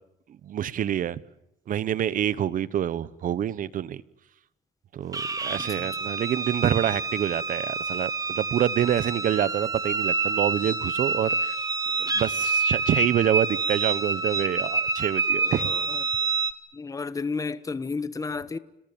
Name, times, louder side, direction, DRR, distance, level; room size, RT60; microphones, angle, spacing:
voice 1, 0.4-1.2 1.7-4.0 4.9-11.6 12.0-15.7, right 10 dB, 55° right, 1.1 m, -27 dB
sound 1, 5.1-16.5, right 4 dB, 20° right, 2.2 m, -27 dB
voice 2, 5.6-5.9 15.4-16.0 16.7-18.6, left 4 dB, 20° left, 1.2 m, -32 dB
30.0 x 19.0 x 9.2 m
cardioid pair, 110°, 17 cm